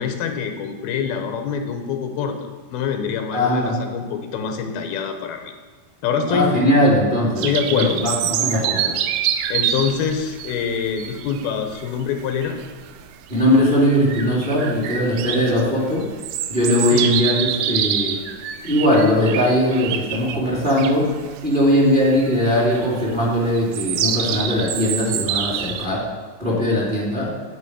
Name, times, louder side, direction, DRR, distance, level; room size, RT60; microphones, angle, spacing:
voice 1, 0.0-5.5 6.0-6.5 7.4-8.0 9.5-12.6 16.9-17.1, left 6 dB, 85° left, 5 dB, 2.8 m, -25 dB
voice 2, 3.3-3.8 6.3-9.0 13.3-16.1 16.5-18.2 18.6-21.1 21.4-26.0 26.4-27.3, left 1 dB, 15° right, -5 dB, 2.5 m, -19 dB
sound 1, 7.4-25.9, right 9 dB, 85° right, 1.8 m, -27 dB
9.8 x 9.4 x 5.1 m, 1.5 s
omnidirectional pair, 4.4 m